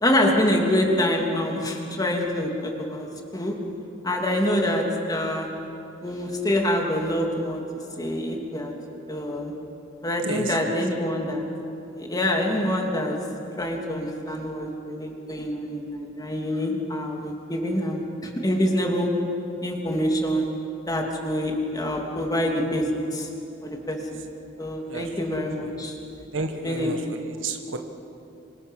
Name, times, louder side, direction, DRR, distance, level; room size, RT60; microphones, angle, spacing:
voice 1, 0.0-3.1 3.3-3.6 4.0-5.5 6.0-7.6 8.0-8.7 9.1-9.5 10.0-11.4 11.9-13.3 13.6-19.2 19.6-20.5 20.9-23.3 23.6-24.2 24.6-26.0 26.6-26.9, left 1 dB, 20° left, 1 dB, 3.0 m, -26 dB
voice 2, 10.2-10.8 24.9-25.8 26.3-27.8, right 3 dB, 90° right, 5 dB, 1.6 m, -33 dB
27.0 x 24.5 x 6.6 m, 2.8 s
head